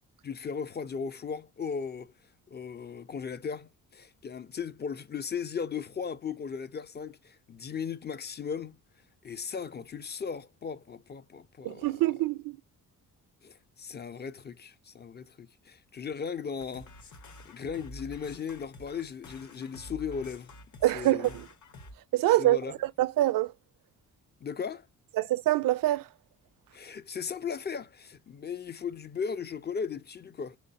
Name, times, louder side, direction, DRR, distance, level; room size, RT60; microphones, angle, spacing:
voice 1, 0.2-2.1 2.5-8.8 9.2-12.0 13.4-16.9 17.5-20.5 20.9-21.3 22.3-22.8 24.4-24.9 26.7-30.6, left 6 dB, 30° left, 0.4 m, -37 dB
voice 2, 11.6-12.6 20.8-21.5 22.1-23.5 25.2-26.1, right 15 dB, 70° right, 0.5 m, -25 dB
sound 1, 16.6-21.9, left 1 dB, 55° left, 1.2 m, -49 dB
3.8 x 3.1 x 2.6 m
cardioid pair, 80°, 35 cm